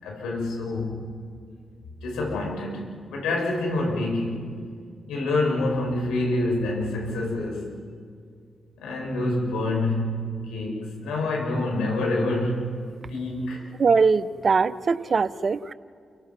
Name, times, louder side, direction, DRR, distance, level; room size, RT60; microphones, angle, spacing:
voice 1, 0.0-1.1 2.0-4.5 5.1-7.7 8.8-12.7 13.1-13.6, left 2 dB, 90° left, -1 dB, 6.6 m, -27 dB
voice 2, 13.8-15.7, right 5 dB, 55° right, 14 dB, 0.9 m, -21 dB
29.5 x 17.5 x 6.0 m, 2.2 s
supercardioid pair, 45°, 0 cm